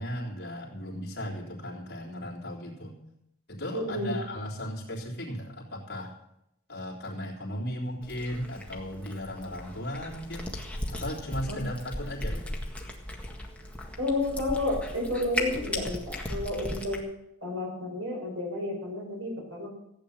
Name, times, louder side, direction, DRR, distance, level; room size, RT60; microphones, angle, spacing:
voice 1, 0.0-3.0 3.5-6.1 6.7-10.5 10.9-12.6, equal, 50° left, -3 dB, 3.5 m, -36 dB
voice 2, 3.7-4.1 11.5-11.6 14.0-17.0 17.4-19.7, left 1 dB, 70° right, 0 dB, 5.2 m, -31 dB
Cat, 8.0-17.0, left 1 dB, 5° left, 1.8 m, -37 dB
15.5 x 8.9 x 7.2 m, 0.82 s
head